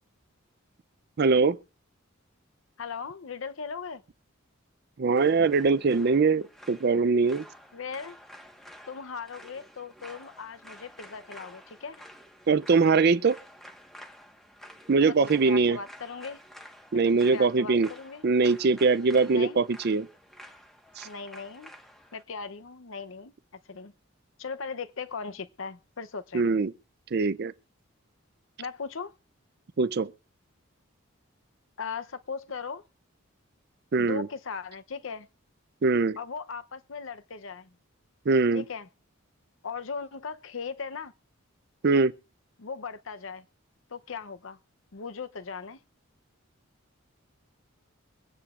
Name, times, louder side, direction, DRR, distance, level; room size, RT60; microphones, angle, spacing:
voice 1, 1.2-1.6 5.0-7.4 12.5-13.4 14.9-15.8 16.9-17.9 18.2-20.1 21.0-21.1 26.3-26.7 27.1-27.5 29.8-30.1 33.9-34.3 35.8-36.2 38.3-38.6 41.8-42.1, right 4 dB, 50° right, 0.5 m, -22 dB
voice 2, 2.8-4.0 7.7-8.2 8.9-12.0 15.0-16.4 17.0-18.2 19.3-19.6 21.0-21.7 22.1-23.3 23.7-23.9 24.4-26.6 28.6-29.1 31.8-32.8 34.0-35.3 36.2-37.7 38.5-38.9 39.6-41.1 42.6-43.5 43.9-44.6 44.9-45.8, left 5 dB, 65° left, 0.7 m, -38 dB
sound 1, 5.1-22.2, equal, ahead, 1.3 m, -50 dB
23.5 x 9.9 x 2.5 m
head